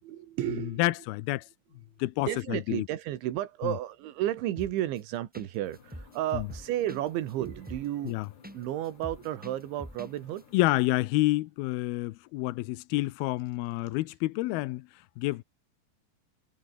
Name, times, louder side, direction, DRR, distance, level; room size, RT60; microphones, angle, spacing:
voice 1, 0.1-0.9 2.2-8.2 8.5-10.4 13.8-14.0, right 13 dB, 80° right, 4.1 m, -33 dB
voice 2, 0.8-1.5 2.0-2.9 3.6-3.7 6.3-6.5 8.1-8.3 10.5-14.9 15.2-15.4, left 19 dB, 85° left, 2.2 m, -28 dB
sound 1, 4.6-5.0 5.3-5.5 5.7-8.6 8.8-10.1 10.4-10.5, equal, 5° right, 0.6 m, -44 dB
sound 2, 5.6-11.0, left 7 dB, 65° left, 6.4 m, -56 dB
omnidirectional pair, 5.3 m